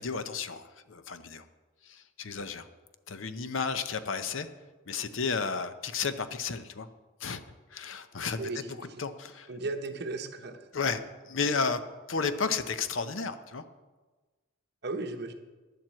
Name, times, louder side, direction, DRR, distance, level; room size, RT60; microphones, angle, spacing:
voice 1, 0.0-1.4 1.9-2.7 3.1-4.5 4.9-6.9 7.2-7.4 7.7-9.5 10.7-11.8 12.1-13.6, left 5 dB, 75° left, 11 dB, 0.8 m, -33 dB
voice 2, 8.4-8.9 9.5-10.6 14.8-15.3, right 3 dB, 55° right, 7 dB, 1.0 m, -35 dB
11.0 x 7.5 x 7.6 m, 1.3 s
head